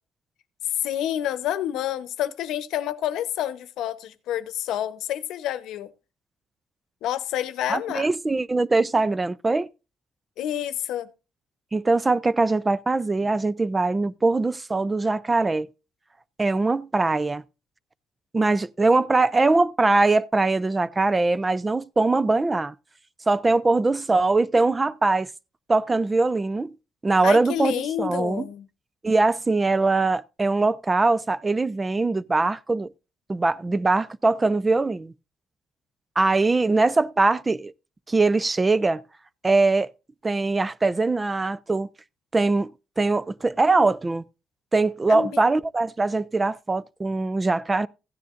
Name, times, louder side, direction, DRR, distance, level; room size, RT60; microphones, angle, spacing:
voice 1, 0.6-5.9 7.0-8.1 10.4-11.1 27.2-28.7 45.1-45.5, left 11 dB, 85° left, 0.9 m, -28 dB
voice 2, 7.7-9.7 11.7-15.7 16.4-17.4 18.3-22.7 23.3-25.3 25.7-26.7 27.0-28.4 29.0-32.9 33.3-35.1 36.2-37.7 38.1-39.0 39.4-39.9 40.2-41.9 42.3-42.7 43.0-44.2 44.7-47.9, right 3 dB, 25° right, 0.4 m, -22 dB
15.5 x 10.0 x 2.5 m
cardioid pair, 90°, 0 cm